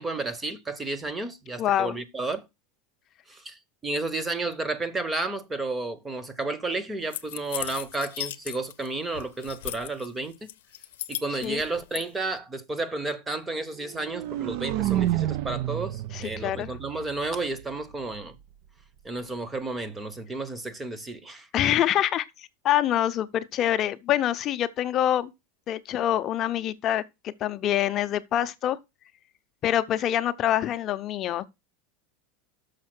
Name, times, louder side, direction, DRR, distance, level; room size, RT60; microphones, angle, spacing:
voice 1, 0.0-2.5 3.3-10.3 11.1-18.4 19.0-21.5, right 2 dB, 10° right, 0.8 m, -32 dB
voice 2, 1.6-1.9 11.4-11.6 16.1-16.7 21.5-25.3 25.7-28.8 29.6-31.5, left 11 dB, 30° left, 0.6 m, -25 dB
sound 1, 7.1-8.9 9.1-10.1 10.5-12.0, left 14 dB, 85° left, 0.6 m, -36 dB
sound 2, 13.8-17.8, right 14 dB, 55° right, 0.4 m, -30 dB
6.5 x 5.5 x 6.0 m
supercardioid pair, 155°, 0 cm